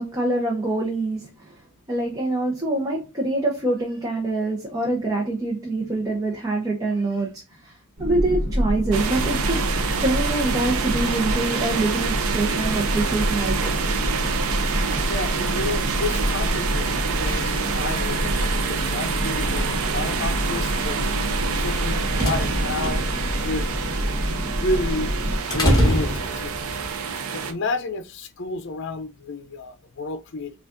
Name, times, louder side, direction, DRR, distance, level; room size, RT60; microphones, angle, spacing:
voice 1, 0.0-1.6 1.9-7.3 7.6-7.7 8.0-9.6 10.0-13.8, right 2 dB, 15° right, 0.8 m, -25 dB
sound 1, 8.0-25.4, equal, 60° right, 1.3 m, -27 dB
Engine mechanical, 8.9-27.5, right 5 dB, 85° right, 0.6 m, -27 dB
voice 2, 15.1-21.0 21.6-23.1 23.4-23.7 24.5-25.1 25.5-26.9 27.3-30.5, left 2 dB, 55° left, 0.6 m, -31 dB
sound 2, 22.0-26.9, equal, 20° left, 1.7 m, -25 dB
6.0 x 2.5 x 2.6 m
head